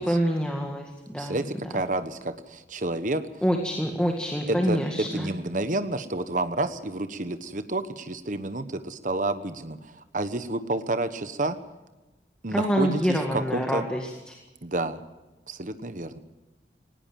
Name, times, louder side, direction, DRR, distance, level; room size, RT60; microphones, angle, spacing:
voice 1, 0.0-1.4 3.4-5.3 12.5-14.4, equal, 5° left, 1 dB, 1.9 m, -26 dB
voice 2, 1.2-3.2 4.5-4.8 5.1-11.6 12.4-13.8 14.6-15.0 15.5-16.2, right 2 dB, 45° right, 10 dB, 1.2 m, -30 dB
19.0 x 18.0 x 7.6 m, 1.1 s
head